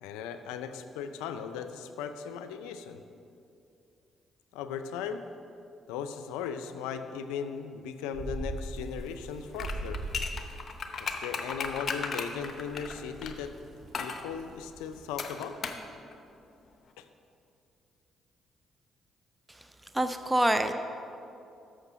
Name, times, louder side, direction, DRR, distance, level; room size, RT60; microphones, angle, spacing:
voice 1, 0.0-3.0 4.5-5.2 5.9-10.0 11.0-13.5 14.0-15.6 17.0-17.1, left 7 dB, 85° left, 8 dB, 0.4 m, -37 dB
sound 1, 8.1-15.2, right 2 dB, 50° right, 1.4 m, -42 dB
sound 2, 9.6-13.4 13.9-14.2 15.2-15.9 16.1-16.2, left 5 dB, 50° left, 0.7 m, -35 dB
voice 2, 19.9-20.7, right 1 dB, 10° right, 8 dB, 0.5 m, -25 dB
6.5 x 6.3 x 6.1 m, 2.6 s
hypercardioid pair, 55°, 0 cm